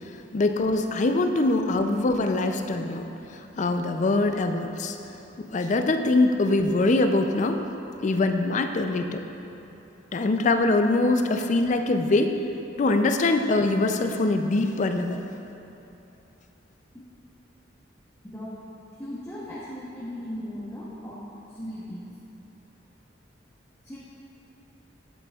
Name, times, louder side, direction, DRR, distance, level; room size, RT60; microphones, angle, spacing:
voice 1, 0.3-3.0 3.6-5.0 5.4-7.6 8.0-9.2 10.1-12.3 12.8-15.2, left 2 dB, 40° left, 6 dB, 0.4 m, -23 dB
voice 2, 18.2-18.7 19.0-22.1 23.8-24.0, equal, 15° left, -10 dB, 0.8 m, -37 dB
10.5 x 7.7 x 2.4 m, 3.0 s
head